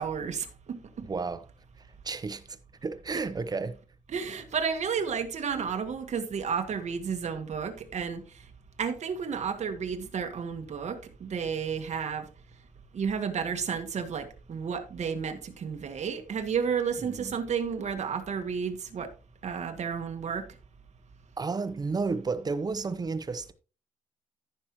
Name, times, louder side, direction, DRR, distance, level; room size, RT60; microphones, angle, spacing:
voice 1, 0.0-1.1 3.1-3.2 4.1-8.5 8.8-12.3 12.9-19.1 19.4-20.5, right 6 dB, 60° right, 1.4 m, -32 dB
voice 2, 1.0-1.5 1.8-3.8 17.0-17.4 21.4-23.5, right 4 dB, 30° right, 0.7 m, -32 dB
14.0 x 5.9 x 3.0 m
wide cardioid pair, 150°, 13 cm